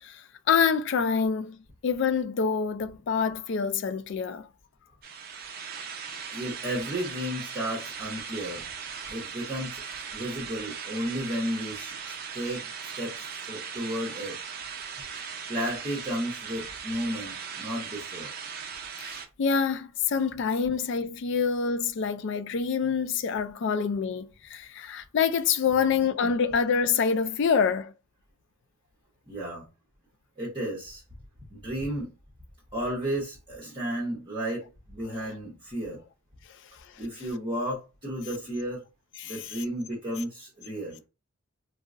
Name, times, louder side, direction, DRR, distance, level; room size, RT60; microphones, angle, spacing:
voice 1, 0.0-1.6 1.8-4.5 19.0-27.9 35.1-35.2 37.0-37.1 39.2-39.6, left 6 dB, 55° left, 0.3 m, -26 dB
sound 1, 5.0-19.3, right 6 dB, 45° right, 0.4 m, -39 dB
voice 2, 6.3-8.6 9.1-9.8 10.1-14.4 15.5-18.3 25.6-26.0 29.3-29.7 30.4-31.0 31.5-32.1 32.7-36.0 37.0-38.8 39.2-41.0, equal, 25° right, 0.8 m, -33 dB
3.7 x 2.0 x 2.4 m
head